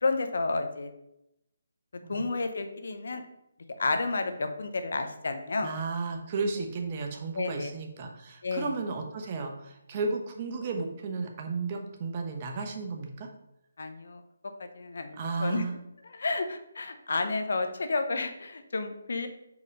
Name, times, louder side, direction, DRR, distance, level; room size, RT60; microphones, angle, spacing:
voice 1, 0.0-0.9 2.1-3.2 3.8-5.7 7.3-7.7 8.4-8.7 13.8-14.2 14.6-15.6 16.0-19.3, left 3 dB, 70° left, 7 dB, 0.8 m, -31 dB
voice 2, 5.6-13.3 15.1-15.8, right 4 dB, 30° right, 3 dB, 1.0 m, -33 dB
4.9 x 4.8 x 5.4 m, 0.83 s
hypercardioid pair, 160°, 0 cm